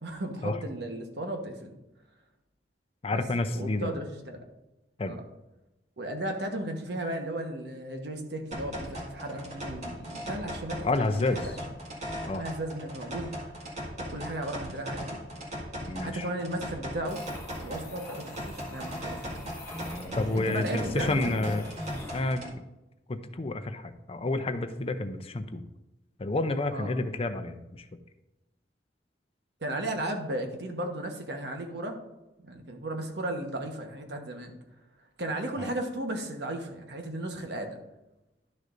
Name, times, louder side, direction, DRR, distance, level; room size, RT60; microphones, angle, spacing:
voice 1, 0.0-1.7 3.1-3.2 3.5-4.4 5.1-5.2 6.0-11.5 12.3-13.6 14.0-15.2 16.0-17.2 17.6-19.4 20.3-21.4 26.7-26.9 29.6-32.0 32.4-34.5 35.2-37.8, right 1 dB, 70° right, 4 dB, 1.2 m, -35 dB
voice 2, 3.0-3.9 5.0-5.1 10.8-11.4 12.3-12.4 15.9-16.3 20.2-21.6 22.1-22.6 23.1-25.6 26.2-27.8 35.6-35.7, left 2 dB, 35° left, 9 dB, 0.5 m, -29 dB
sound 1, 8.5-22.5, equal, 40° right, 1.9 m, -39 dB
sound 2, 17.1-22.4, equal, 15° left, 1.5 m, -42 dB
11.5 x 6.4 x 2.6 m, 0.97 s
head